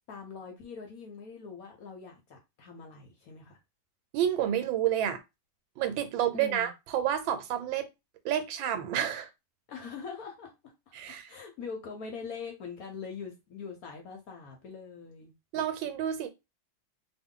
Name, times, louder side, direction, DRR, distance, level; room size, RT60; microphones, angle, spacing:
voice 1, 0.1-3.6 6.3-6.7 9.7-15.3, left 5 dB, 65° left, 0.9 m, -43 dB
voice 2, 4.1-5.2 5.8-7.9 8.2-9.3 10.9-11.4 15.5-16.3, right 10 dB, 90° right, 1.4 m, -29 dB
3.0 x 2.3 x 3.7 m
omnidirectional pair, 2.1 m